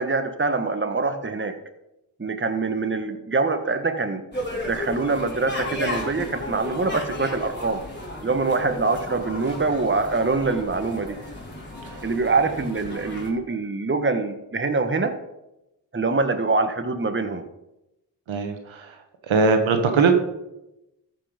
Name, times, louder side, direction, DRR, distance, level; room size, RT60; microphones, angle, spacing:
voice 1, 0.0-1.5 2.2-4.2 4.6-7.8 8.2-11.2 12.0-15.1 15.9-17.4, right 3 dB, 25° right, 7 dB, 1.4 m, -24 dB
sound 1, 4.3-13.3, left 1 dB, 25° left, 3.8 m, -34 dB
voice 2, 18.3-18.9 19.2-20.2, right 4 dB, 85° right, 6 dB, 1.5 m, -20 dB
13.5 x 6.0 x 5.2 m, 0.91 s
cardioid pair, 40°, 46 cm